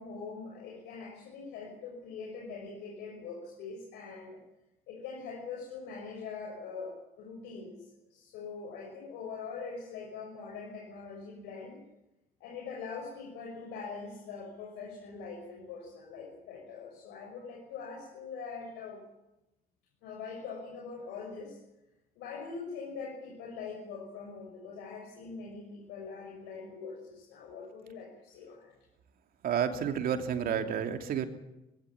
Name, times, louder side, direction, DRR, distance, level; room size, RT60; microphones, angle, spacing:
voice 1, 0.0-4.4 4.9-11.8 12.4-19.0 20.0-21.6 22.1-28.7, left 5 dB, 90° left, -1 dB, 6.3 m, -43 dB
voice 2, 29.4-31.3, right 8 dB, 60° right, 6 dB, 3.0 m, -30 dB
21.5 x 17.0 x 9.9 m, 0.92 s
cardioid pair, 110°, 17 cm